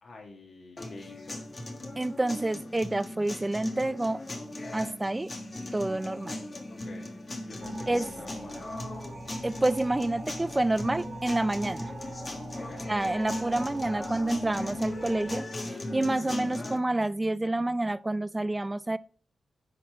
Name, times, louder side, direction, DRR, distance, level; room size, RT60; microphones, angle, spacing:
voice 1, 0.0-1.4 6.7-7.1 7.4-8.7 12.6-12.8, left 3 dB, 50° left, 1.6 m, -47 dB
sound 1, 0.8-16.8, left 1 dB, 25° left, 1.3 m, -38 dB
voice 2, 2.0-4.2 4.7-5.3 5.7-6.4 7.9-8.1 9.4-11.9 12.9-19.0, right 2 dB, 15° right, 0.3 m, -28 dB
sound 2, 7.6-15.4, right 4 dB, 50° right, 0.8 m, -45 dB
10.5 x 4.2 x 4.6 m
wide cardioid pair, 140°, 0 cm